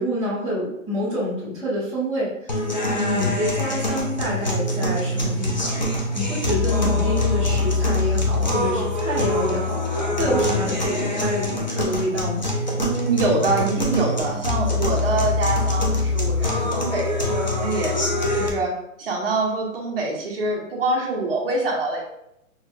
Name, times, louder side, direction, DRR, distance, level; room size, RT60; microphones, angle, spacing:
voice 1, 0.0-2.5 2.9-12.5, equal, 5° left, -15 dB, 0.8 m, -27 dB
sound 1, 2.5-18.5, left 2 dB, 35° left, 0.4 m, -24 dB
voice 2, 12.8-17.9 18.3-18.7 19.0-22.0, right 2 dB, 40° right, -2 dB, 1.0 m, -25 dB
6.1 x 2.2 x 2.5 m, 0.80 s
hypercardioid pair, 170°, 42 cm